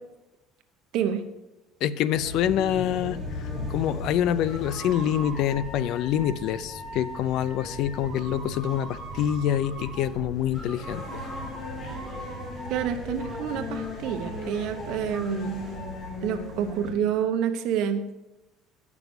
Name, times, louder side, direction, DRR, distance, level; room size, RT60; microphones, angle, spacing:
voice 1, 1.8-11.0, left 10 dB, 60° left, 16 dB, 0.4 m, -26 dB
sound 1, 2.1-16.9, left 1 dB, 20° left, 3.0 m, -37 dB
sound 2, 4.5-10.1 10.5-12.9 13.2-16.1, right 1 dB, ahead, 3.6 m, -42 dB
voice 2, 12.7-15.5 16.2-18.1, right 8 dB, 65° right, 7 dB, 1.0 m, -28 dB
9.1 x 6.0 x 7.0 m, 1.0 s
cardioid pair, 150°, 0 cm